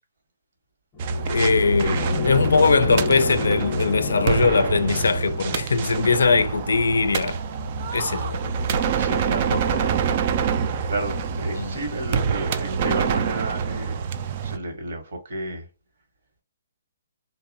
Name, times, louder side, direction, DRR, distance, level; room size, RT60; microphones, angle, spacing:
sound 1, 0.9-5.9, left 4 dB, 20° left, 0.7 m, -31 dB
sound 2, 1.0-14.6, right 6 dB, 40° right, 0.3 m, -26 dB
voice 1, 1.3-7.4 7.9-8.6 9.5-9.8 11.5-11.8, left 4 dB, 80° left, 0.4 m, -21 dB
voice 2, 9.0-10.2 10.9-14.0 14.4-15.6, right 1 dB, 65° right, 1.0 m, -32 dB
2.7 x 2.0 x 2.5 m
hypercardioid pair, 145°, 0 cm